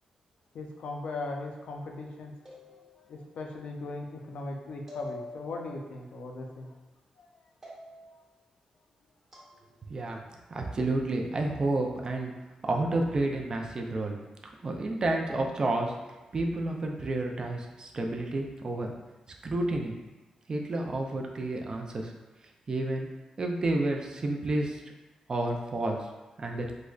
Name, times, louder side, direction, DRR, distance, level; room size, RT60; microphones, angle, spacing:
voice 1, 0.5-2.3 3.1-6.7 7.2-7.3, left 2 dB, 80° left, 1 dB, 0.5 m, -38 dB
sound 1, 2.5-3.3 4.9-5.8 7.6-8.3 9.3-9.5, left 2 dB, 20° right, 1.0 m, -45 dB
voice 2, 9.9-10.2 10.5-12.3 12.6-14.2 14.6-16.0 16.3-18.9 19.4-20.0 20.5-22.1 22.7-23.1 23.4-24.8 25.3-26.0 26.4-26.7, right 2 dB, 35° right, 1 dB, 0.4 m, -30 dB
4.8 x 2.1 x 2.3 m, 1.1 s
wide cardioid pair, 115°, 2 cm